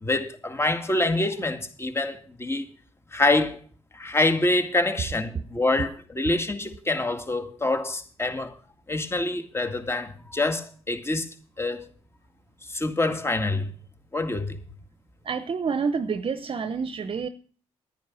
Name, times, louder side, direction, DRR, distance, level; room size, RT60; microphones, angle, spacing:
voice 1, 0.0-2.7 3.1-3.6 3.9-8.5 8.9-11.3 11.6-11.9 12.7-13.7 14.1-14.6, left 2 dB, 20° left, 2.2 m, -26 dB
voice 2, 15.2-17.3, right 5 dB, 50° right, 0.9 m, -28 dB
10.5 x 10.5 x 6.0 m
supercardioid pair, 55°, 12 cm